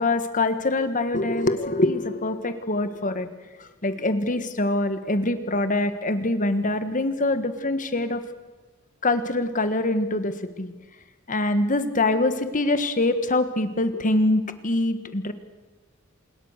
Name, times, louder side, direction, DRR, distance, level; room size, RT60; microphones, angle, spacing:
voice 1, 0.0-3.3 3.6-8.2 9.0-10.7 11.3-15.3, left 2 dB, 40° left, 10 dB, 1.6 m, -24 dB
27.5 x 21.0 x 6.6 m, 1.2 s
head